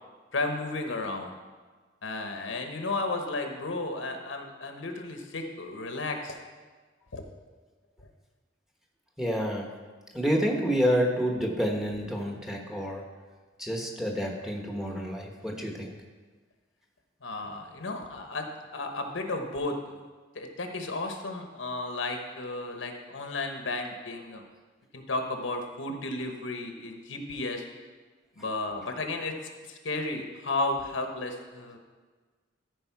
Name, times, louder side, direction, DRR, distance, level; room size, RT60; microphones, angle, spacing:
voice 1, 0.3-1.4 2.0-6.4 7.1-7.2 8.0-8.1 17.2-18.5 18.7-20.0 20.3-24.4 24.9-27.6 28.4-29.4 29.6-31.8, left 2 dB, 80° left, 4 dB, 1.1 m, -33 dB
voice 2, 9.2-9.7 10.1-13.0 13.6-15.9, equal, ahead, 0 dB, 1.1 m, -28 dB
14.0 x 5.0 x 4.7 m, 1.4 s
head